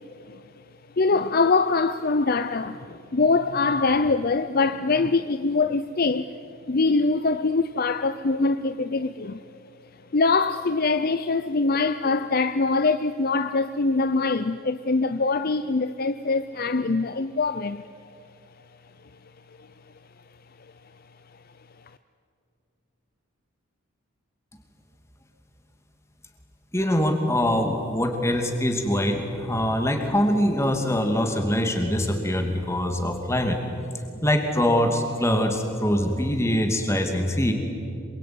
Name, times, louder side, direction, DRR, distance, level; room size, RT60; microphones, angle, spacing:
voice 1, 1.0-6.4 6.7-9.4 10.1-17.8, left 3 dB, 45° left, 0.6 m, -23 dB
voice 2, 26.7-33.6 34.2-37.5, left 1 dB, 15° left, 2.6 m, -23 dB
27.0 x 22.5 x 9.5 m
head